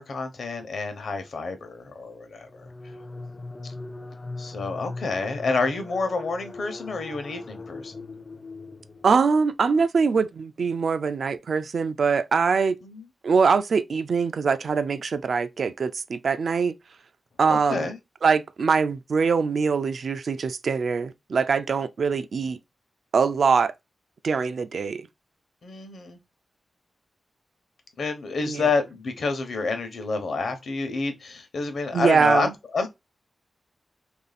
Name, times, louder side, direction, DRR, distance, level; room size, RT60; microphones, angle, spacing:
voice 1, 0.0-2.7 3.6-3.7 4.4-7.9 12.8-13.1 17.5-18.0 25.6-26.2 28.0-32.9, left 4 dB, 70° left, 0.8 m, -29 dB
sound 1, 2.5-9.4, left 3 dB, 35° left, 0.4 m, -40 dB
voice 2, 9.0-12.8 13.2-16.7 17.4-17.9 18.2-22.6 23.1-23.7 24.2-25.1 28.5-28.6 31.9-32.5, right 5 dB, 65° right, 0.4 m, -23 dB
3.0 x 2.6 x 4.0 m
wide cardioid pair, 110°, 0 cm